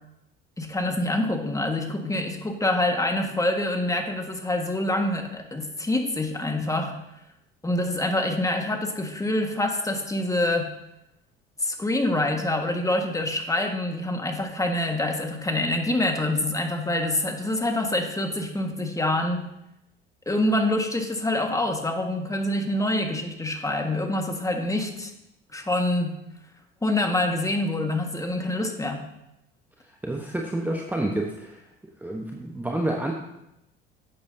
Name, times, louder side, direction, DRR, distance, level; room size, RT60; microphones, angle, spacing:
voice 1, 0.6-6.9 7.6-10.7 11.6-19.4 20.2-25.1 25.5-26.1 26.8-29.0, left 1 dB, 10° left, 4 dB, 1.7 m, -26 dB
voice 2, 30.0-31.6 32.0-33.1, right 1 dB, 5° right, 1 dB, 1.0 m, -29 dB
12.0 x 8.5 x 2.8 m, 0.86 s
hypercardioid pair, 65°, 29 cm